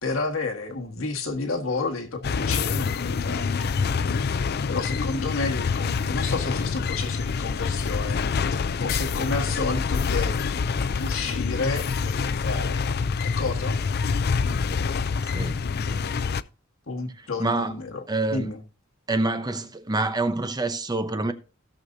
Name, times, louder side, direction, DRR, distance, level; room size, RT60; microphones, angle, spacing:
voice 1, 0.0-3.7 4.0-4.3 4.7-10.6 11.0-12.8 13.2-13.8 14.4-14.6 16.9-18.0 18.3-18.6, left 3 dB, 75° left, 1.6 m, -31 dB
sound 1, 2.2-16.4, left 5 dB, 50° left, 0.5 m, -26 dB
voice 2, 15.3-15.7 17.4-17.7 18.1-18.6 19.1-21.3, right 2 dB, 20° right, 0.7 m, -26 dB
17.0 x 6.5 x 2.7 m
head